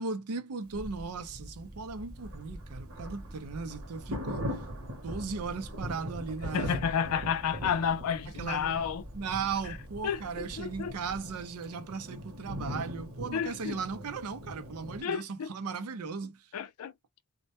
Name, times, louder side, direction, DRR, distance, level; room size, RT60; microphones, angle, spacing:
voice 1, 0.0-4.6 4.9-6.9 8.4-8.8 9.1-16.5, right 5 dB, 85° right, 0.5 m, -37 dB
sound 1, 0.7-11.3, right 1 dB, 15° right, 0.4 m, -46 dB
Thunder, 2.2-15.0, equal, 65° right, 0.9 m, -41 dB
voice 2, 6.5-9.0 10.0-11.0 13.3-13.8 15.0-15.5 16.5-16.9, left 7 dB, 80° left, 0.4 m, -31 dB
2.1 x 2.1 x 2.8 m
head